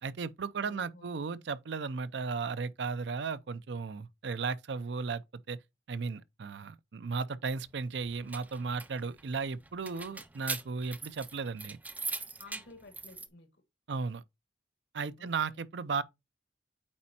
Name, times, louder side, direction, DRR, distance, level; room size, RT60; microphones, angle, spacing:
voice 1, 0.0-5.2 5.5-5.6 5.9-11.8 13.9-14.2 14.9-16.0, right 5 dB, 65° right, 0.5 m, -35 dB
voice 2, 0.6-1.1 12.4-13.5 15.2-15.6, left 2 dB, 65° left, 1.4 m, -53 dB
sound 1, 8.0-13.3, right 3 dB, 10° right, 0.4 m, -41 dB
8.6 x 4.2 x 2.8 m
head